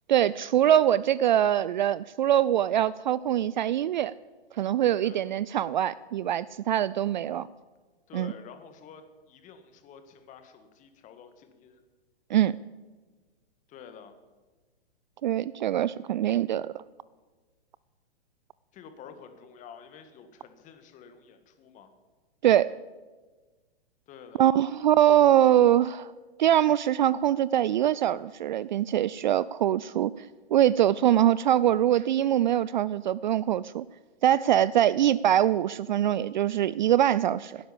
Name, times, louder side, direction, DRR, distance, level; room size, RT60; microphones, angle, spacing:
voice 1, 0.1-4.1 4.6-7.5 8.1-8.3 12.3-12.6 15.2-16.7 22.4-22.7 24.4-26.1 26.4-30.1 30.5-33.8 34.2-37.6, right 11 dB, 50° right, 19 dB, 0.4 m, -23 dB
voice 2, 8.1-11.8 13.7-14.2 18.7-21.9 24.1-24.5, left 7 dB, 25° left, 8 dB, 1.7 m, -49 dB
16.0 x 10.0 x 7.2 m, 1.3 s
figure-of-eight pair, 120°, 32 cm